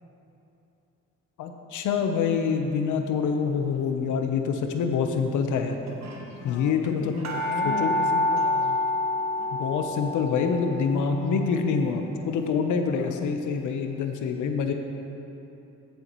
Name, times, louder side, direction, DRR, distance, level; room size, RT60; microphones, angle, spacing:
voice 1, 1.4-5.8 6.4-7.1 7.6-7.9 9.5-14.7, left 6 dB, 80° left, 5 dB, 0.9 m, -26 dB
sound 1, 4.1-4.4 5.3-5.4 5.6-5.7 5.9-13.5 13.9-14.0, left 2 dB, 60° right, 1.3 m, -29 dB
voice 2, 6.4-8.8 12.8-13.4, left 9 dB, 50° left, 8 dB, 0.4 m, -38 dB
14.5 x 7.0 x 3.1 m, 2.9 s
cardioid pair, 90°, 30 cm